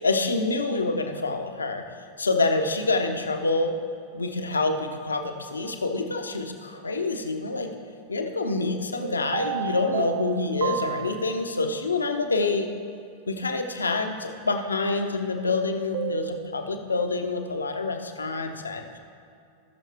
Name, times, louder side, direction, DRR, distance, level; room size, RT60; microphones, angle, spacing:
voice 1, 0.0-1.8 2.2-3.7 4.1-7.7 8.1-12.7 13.3-19.0, left 3 dB, 75° left, 5 dB, 0.9 m, -27 dB
sound 1, 9.0-11.8 15.9-16.4, right 13 dB, 55° right, 0.4 m, -32 dB
18.0 x 6.3 x 3.4 m, 2.5 s
figure-of-eight pair, 90°, 0 cm